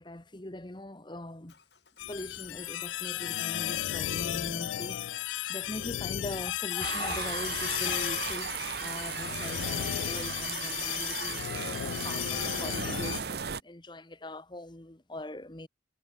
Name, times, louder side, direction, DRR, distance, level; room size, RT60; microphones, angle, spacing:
voice 1, 0.0-1.5 2.1-15.7, left 1 dB, 25° left, 1.3 m, -42 dB
Motor vehicle (road) / Engine, 1.5-9.9, left 3 dB, 65° left, 5.8 m, -62 dB
sound 1, 2.0-13.2, left 13 dB, 85° left, 0.3 m, -34 dB
sound 2, 6.8-13.6, right 6 dB, 60° right, 0.9 m, -36 dB
head